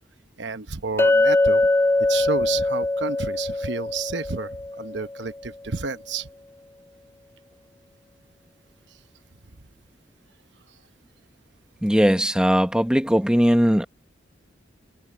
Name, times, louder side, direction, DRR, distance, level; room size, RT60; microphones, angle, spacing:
voice 1, 0.4-1.7 2.1-6.3, right 4 dB, 70° right, 1.0 m, -31 dB
Chink clink, 1.0-5.2, left 2 dB, 15° left, 0.3 m, -22 dB
voice 2, 11.8-13.9, equal, 5° right, 1.0 m, -19 dB
head